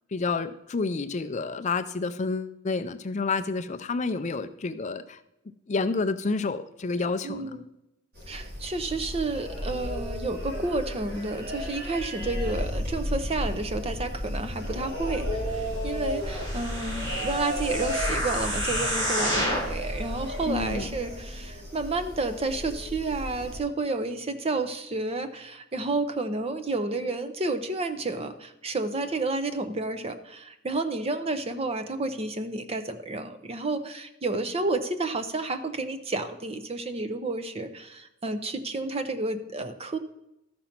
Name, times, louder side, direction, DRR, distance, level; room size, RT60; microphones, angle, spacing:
voice 1, 0.1-5.2 5.7-7.5 20.5-21.0, left 4 dB, 35° left, 11 dB, 0.4 m, -29 dB
voice 2, 7.2-7.7 8.3-40.0, right 3 dB, 30° right, 9 dB, 0.7 m, -31 dB
sound 1, 8.1-23.6, equal, 50° right, 3.5 m, -33 dB
sound 2, 16.2-19.8 20.4-20.5, equal, 70° right, 2.6 m, -30 dB
13.0 x 5.2 x 5.9 m, 0.86 s
head